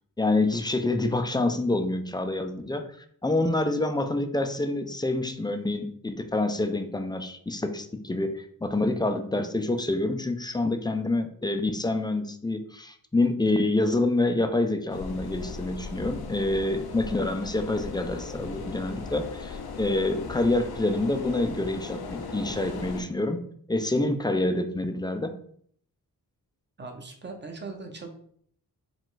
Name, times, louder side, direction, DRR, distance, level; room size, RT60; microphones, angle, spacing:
voice 1, 0.2-2.8 3.2-23.4 23.7-25.4, left 2 dB, 10° left, 7 dB, 0.4 m, -27 dB
sound 1, 14.9-23.0, left 4 dB, 85° left, 0.7 m, -38 dB
voice 2, 26.8-28.1, right 3 dB, 30° right, 3 dB, 0.8 m, -39 dB
4.9 x 2.4 x 3.8 m, 0.62 s
wide cardioid pair, 105°, 37 cm